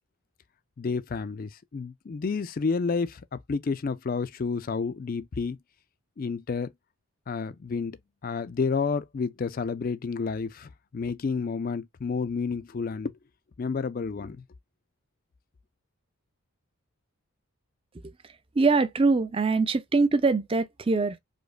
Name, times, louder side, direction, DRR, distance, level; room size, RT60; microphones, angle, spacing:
voice 1, 0.8-5.6 6.2-6.7 7.3-13.2 13.6-14.4, left 5 dB, 40° left, 0.3 m, -30 dB
voice 2, 18.6-21.2, right 3 dB, 25° right, 0.4 m, -23 dB
5.0 x 2.1 x 2.3 m
head